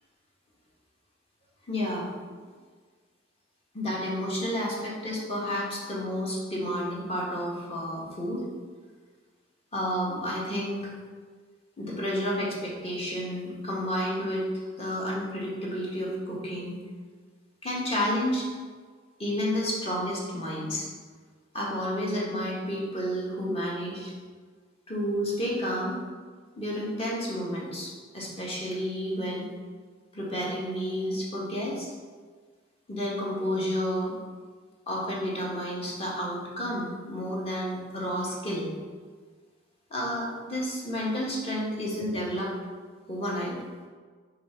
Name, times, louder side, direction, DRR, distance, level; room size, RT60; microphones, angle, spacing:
voice 1, 1.7-2.1 3.7-8.4 9.7-10.9 11.8-16.8 17.6-18.5 19.2-20.9 21.5-24.1 24.9-26.0 26.6-29.5 30.1-31.9 32.9-34.1 34.9-38.7 39.9-42.5 43.1-43.6, equal, 35° left, -4 dB, 1.7 m, -31 dB
6.0 x 3.6 x 5.7 m, 1.5 s
head